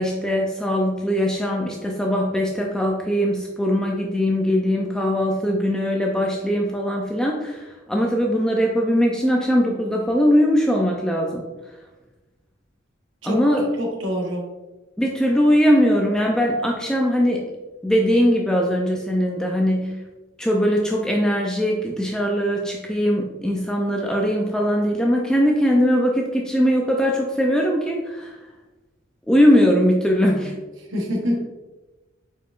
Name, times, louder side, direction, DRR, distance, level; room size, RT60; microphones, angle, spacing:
voice 1, 0.0-11.5 13.2-13.7 15.0-17.5 17.8-20.0 20.4-28.4 29.3-30.5, equal, 5° left, -1 dB, 0.4 m, -20 dB
voice 2, 13.8-14.5 30.9-31.5, equal, 80° right, 1 dB, 1.0 m, -25 dB
4.7 x 4.5 x 2.4 m, 1.1 s
head